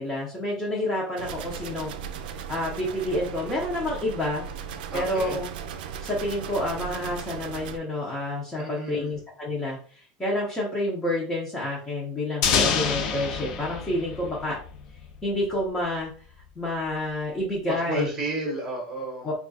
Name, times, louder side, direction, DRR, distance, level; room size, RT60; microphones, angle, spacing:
voice 1, 0.0-1.9 2.5-4.5 4.9-5.5 6.0-14.6 15.2-16.1 16.6-18.1 19.2-19.3, left 1 dB, 10° left, -5 dB, 0.7 m, -29 dB
sound 1, 1.2-7.8, right 7 dB, 80° right, 0.5 m, -37 dB
voice 2, 4.9-5.4 8.6-9.1 17.7-19.3, right 1 dB, 10° right, -1 dB, 1.0 m, -32 dB
sound 2, 12.4-15.2, left 6 dB, 55° left, 0.7 m, -27 dB
3.3 x 2.4 x 4.0 m, 0.43 s
supercardioid pair, 175°, 5 cm